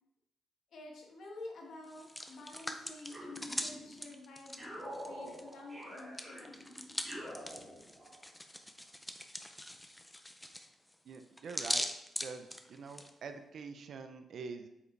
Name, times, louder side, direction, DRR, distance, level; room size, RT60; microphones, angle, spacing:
voice 1, 0.7-7.0, left 2 dB, 65° left, 0 dB, 1.5 m, -50 dB
Hands, 1.8-5.5 5.8-13.1, left 1 dB, 5° left, 0.5 m, -41 dB
sound 1, 3.1-4.1 4.6-8.2, equal, 15° right, 2.2 m, -47 dB
voice 2, 11.0-11.9 12.2-14.7, right 5 dB, 55° right, 7 dB, 0.5 m, -45 dB
8.1 x 4.8 x 3.2 m, 0.86 s
wide cardioid pair, 155°, 0 cm